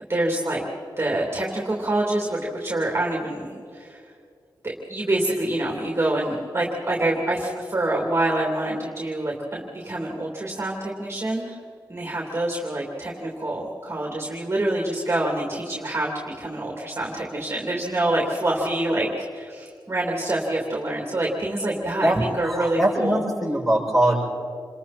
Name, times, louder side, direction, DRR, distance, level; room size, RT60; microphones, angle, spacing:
voice 1, 0.1-0.6 1.0-4.0 4.6-11.6 11.9-23.2, right 1 dB, 30° right, -2 dB, 3.1 m, -26 dB
voice 2, 22.4-24.1, right 1 dB, ahead, -4 dB, 6.8 m, -22 dB
28.0 x 21.5 x 4.4 m, 2.3 s
wide cardioid pair, 85°, 8 cm